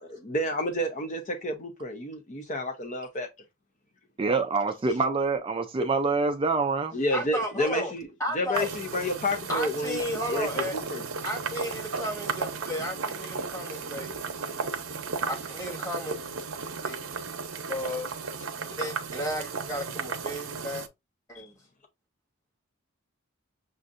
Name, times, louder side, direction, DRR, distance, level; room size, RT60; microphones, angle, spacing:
voice 1, 0.2-3.3 6.9-8.1 8.3-10.0 10.3-11.0 21.3-21.5, left 1 dB, 35° left, 0.6 m, -30 dB
voice 2, 4.2-7.0, right 4 dB, 25° right, 0.3 m, -26 dB
voice 3, 7.1-7.9 8.2-8.7 9.5-10.7 11.2-14.1 15.3-16.2 16.8-17.0 17.7-18.1 18.8-20.8 21.3-21.5, equal, 15° left, 1.6 m, -33 dB
sound 1, 8.5-20.9, right 5 dB, 80° right, 0.7 m, -35 dB
6.3 x 2.6 x 2.5 m
head